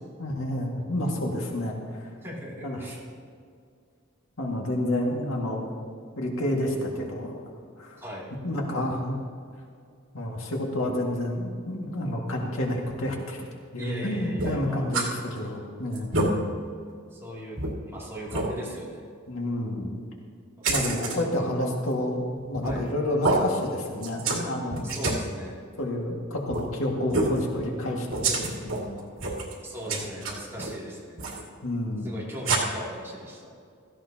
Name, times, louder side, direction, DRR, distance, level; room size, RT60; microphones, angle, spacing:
voice 1, 0.2-2.1 2.6-2.8 4.4-5.7 6.2-7.4 7.8-8.0 8.4-9.2 10.1-13.4 13.7-16.1 19.3-19.9 20.7-24.8 25.8-29.1 29.9-30.1 31.6-32.1, left 1 dB, 80° left, -1 dB, 2.0 m, -29 dB
voice 2, 2.2-3.0 8.0-8.3 13.8-15.0 17.1-17.6 17.8-19.0 20.7-21.2 22.6-22.8 24.8-25.6 29.6-31.3 32.0-33.5, equal, 10° right, -6 dB, 2.7 m, -39 dB
sound 1, 14.4-15.1 15.5-15.6 15.9-16.3 16.9-17.0 17.6-17.7 18.3-18.5 20.6-21.2 22.5-22.9 23.2-23.4 24.0-24.4 24.7-25.2 26.5-26.6 27.1-27.4 28.1-28.8 29.2-29.5 29.9-30.7 31.2-31.4 32.4-32.6, right 3 dB, 80° right, 2.3 m, -27 dB
16.5 x 14.5 x 2.9 m, 2.2 s
head